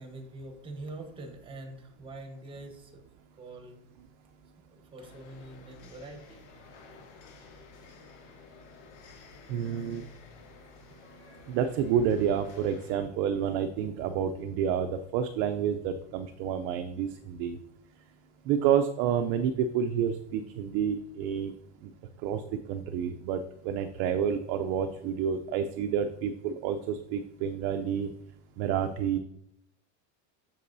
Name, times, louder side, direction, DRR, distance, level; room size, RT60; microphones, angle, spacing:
voice 1, 0.0-2.9 3.4-3.8 4.7-6.4, right 2 dB, 15° right, 5 dB, 1.0 m, -44 dB
sound 1, 5.0-12.9, left 4 dB, 65° left, 2.4 m, -53 dB
voice 2, 9.5-10.1 11.5-17.6 18.5-21.5 21.8-21.9 22.2-22.4 22.7-28.1 28.6-29.2, right 8 dB, 40° right, 8 dB, 0.4 m, -29 dB
8.3 x 6.7 x 2.6 m, 0.80 s
cardioid pair, 165°, 35 cm